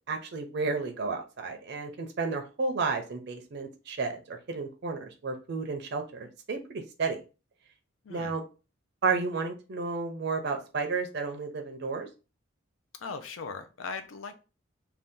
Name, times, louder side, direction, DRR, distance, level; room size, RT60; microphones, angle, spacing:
voice 1, 0.0-7.2 8.1-8.4 9.0-12.1, right 4 dB, 55° right, 4 dB, 0.5 m, -32 dB
voice 2, 13.0-14.4, left 4 dB, 80° left, 8 dB, 0.5 m, -39 dB
2.7 x 2.3 x 3.5 m, 0.32 s
head